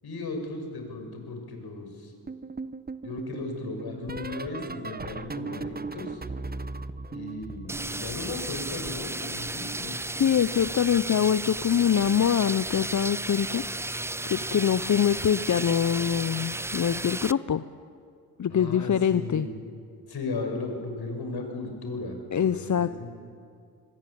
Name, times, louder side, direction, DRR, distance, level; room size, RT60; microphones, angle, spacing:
voice 1, 0.0-2.1 3.0-6.2 7.1-10.1 18.5-19.6 20.1-23.1, left 3 dB, 60° left, 4 dB, 6.6 m, -36 dB
sound 1, 2.3-9.0 9.3-10.9 11.9-12.2 12.5-12.8 14.4-14.7 15.0-15.2 16.8-16.9, right 4 dB, 20° right, 1.2 m, -39 dB
sound 2, 7.7-17.3, right 2 dB, 5° right, 0.6 m, -34 dB
voice 2, 10.2-13.6 14.3-17.6 18.4-19.5 22.3-22.9, left 8 dB, 45° left, 13 dB, 0.9 m, -24 dB
26.0 x 22.0 x 8.8 m, 2.3 s
hypercardioid pair, 45°, 42 cm